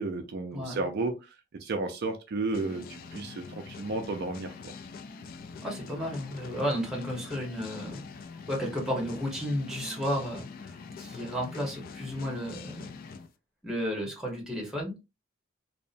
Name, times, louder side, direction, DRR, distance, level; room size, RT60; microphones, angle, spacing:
voice 1, 0.0-4.7, right 3 dB, 55° right, 5 dB, 0.4 m, -33 dB
voice 2, 0.5-0.8 5.6-8.0 8.5-13.0 13.6-14.9, equal, 5° right, -1 dB, 1.0 m, -33 dB
sound 1, 2.5-13.3, left 5 dB, 45° left, 0.3 m, -44 dB
2.7 x 2.1 x 2.5 m, 0.26 s
head